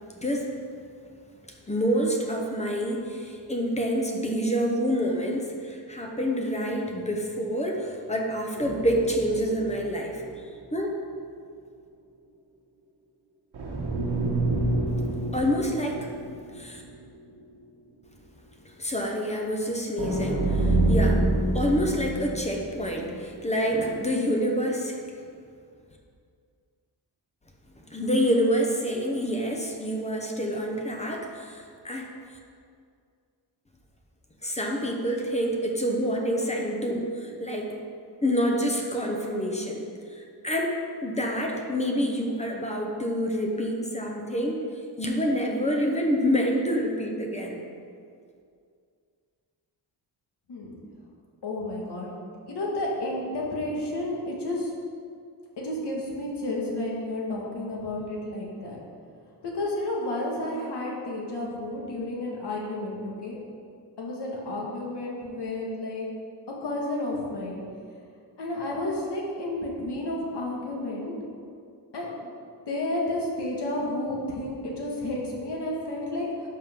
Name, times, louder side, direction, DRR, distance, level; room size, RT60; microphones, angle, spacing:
voice 1, 1.7-10.2 10.7-10.9 15.3-16.1 16.5-16.8 18.8-21.2 21.5-25.0 27.9-32.1 34.4-37.7 38.2-39.9 40.1-44.6 45.0-47.6, equal, 15° left, 1 dB, 0.9 m, -27 dB
sound 1, 8.6-10.6 10.9-11.0 13.5-16.9 17.3-17.4 20.0-23.3, right 2 dB, 70° right, 1.4 m, -27 dB
voice 2, 51.4-52.1 52.5-54.7 55.6-58.8 59.4-63.4 64.0-66.1 66.6-67.6 68.4-71.1 71.9-72.3 72.7-76.3, left 1 dB, 70° left, -3 dB, 1.9 m, -31 dB
11.0 x 5.8 x 3.8 m, 2.3 s
wide cardioid pair, 150°, 42 cm